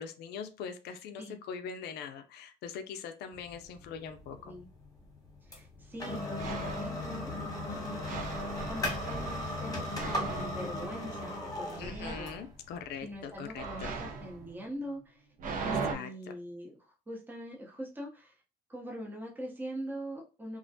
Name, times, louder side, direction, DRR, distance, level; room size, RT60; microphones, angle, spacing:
voice 1, 0.0-4.6 11.8-13.9 15.7-16.1, left 6 dB, 75° left, 7 dB, 0.4 m, -42 dB
sound 1, 3.3-14.5, left 2 dB, 20° left, 1.1 m, -38 dB
voice 2, 5.4-8.2 8.7-12.3 13.0-15.2 15.6-16.8 17.1-18.3 18.7-20.6, equal, 10° right, -1 dB, 0.7 m, -42 dB
sound 2, 5.9-6.0 6.4-7.0 8.0-11.3 11.8-12.5 13.5-15.9, right 5 dB, 55° right, 0.6 m, -39 dB
2.4 x 2.1 x 2.6 m, 0.33 s
cardioid pair, 110°, 17 cm